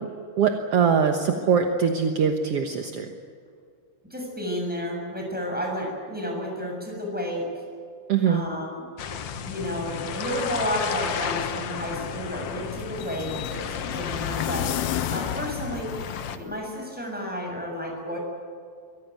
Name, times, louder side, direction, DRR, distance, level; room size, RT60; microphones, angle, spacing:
voice 1, 0.4-3.1 8.1-8.4, right 6 dB, 65° right, 4 dB, 1.6 m, -22 dB
voice 2, 4.1-7.6 8.3-8.8 9.4-14.7 15.1-15.9 16.3-18.2, equal, ahead, 0 dB, 6.9 m, -31 dB
sound 1, 9.0-16.4, left 8 dB, 70° left, 1.4 m, -33 dB
sound 2, 11.5-16.6, left 12 dB, 90° left, 2.7 m, -33 dB
24.0 x 17.5 x 9.4 m, 2.2 s
omnidirectional pair, 4.3 m